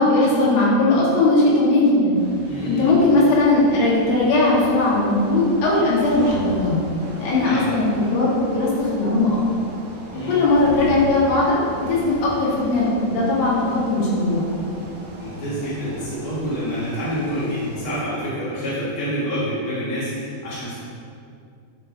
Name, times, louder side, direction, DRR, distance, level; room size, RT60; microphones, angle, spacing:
voice 1, 0.0-2.2 2.6-6.8 7.2-9.4 10.3-14.5, left 2 dB, 75° left, -6 dB, 3.5 m, -18 dB
sound 1, 2.1-18.0, right 1 dB, 65° right, 3.0 m, -38 dB
voice 2, 2.5-2.9 7.3-7.7 10.1-10.4 15.2-20.7, equal, 60° left, -10 dB, 1.4 m, -27 dB
10.0 x 6.5 x 2.6 m, 2.4 s
omnidirectional pair, 4.8 m